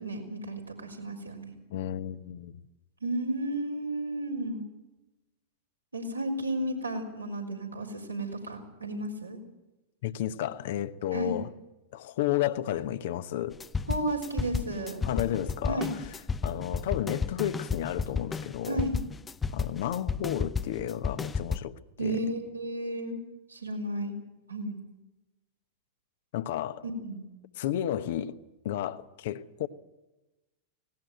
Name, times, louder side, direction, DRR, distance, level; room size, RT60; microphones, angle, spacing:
voice 1, 0.0-1.5 3.0-4.7 5.9-9.4 11.1-11.4 13.9-15.0 15.7-15.9 18.7-19.0 22.0-23.2 23.5-24.1 24.5-24.8 26.9-27.3, right 1 dB, 85° right, 4.2 m, -33 dB
voice 2, 1.7-2.6 10.0-11.5 11.9-13.6 15.0-16.0 16.4-18.9 19.5-21.7 22.0-22.2 26.3-26.8 27.6-28.3 28.6-29.7, left 12 dB, 55° left, 1.1 m, -32 dB
sound 1, 13.5-21.6, left 5 dB, 15° left, 0.6 m, -32 dB
18.5 x 18.0 x 9.1 m
figure-of-eight pair, 90°, 0 cm